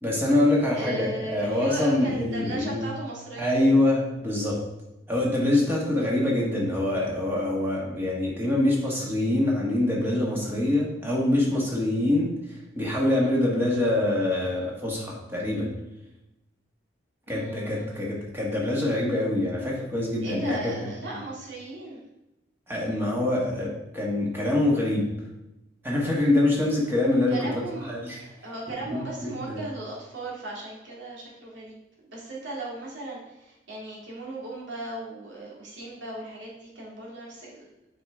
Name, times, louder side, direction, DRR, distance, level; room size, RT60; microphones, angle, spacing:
voice 1, 0.0-2.9 3.4-4.6 5.1-15.8 17.3-20.7 22.7-25.1 25.8-27.5 27.9-28.2 29.2-29.6, left 1 dB, 10° right, -4 dB, 1.5 m, -25 dB
voice 2, 0.7-3.9 13.1-13.4 17.3-18.0 20.2-22.0 27.3-37.6, right 2 dB, 75° right, -4 dB, 2.3 m, -37 dB
7.6 x 4.8 x 3.6 m, 0.93 s
head